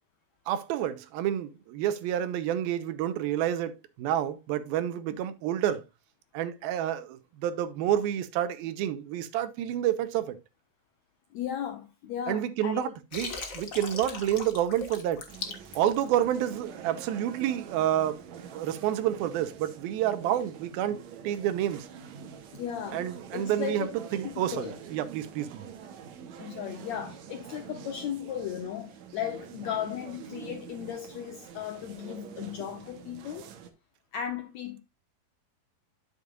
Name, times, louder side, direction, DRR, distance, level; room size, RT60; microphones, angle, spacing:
voice 1, 0.5-5.8 6.3-10.4 12.3-15.3 15.8-18.2 18.5-21.0 21.2-21.9 22.9-23.9 24.1-25.7, right 11 dB, 90° right, 2.7 m, -29 dB
voice 2, 11.3-12.8 20.2-20.3 22.5-23.9 24.2-24.8 26.4-33.5 34.1-34.8, left 9 dB, 85° left, 1.5 m, -36 dB
Water, 13.1-16.6, left 4 dB, 55° left, 0.9 m, -39 dB
sound 1, 15.3-33.7, right 8 dB, 65° right, 2.0 m, -45 dB
12.0 x 7.1 x 2.4 m
omnidirectional pair, 4.2 m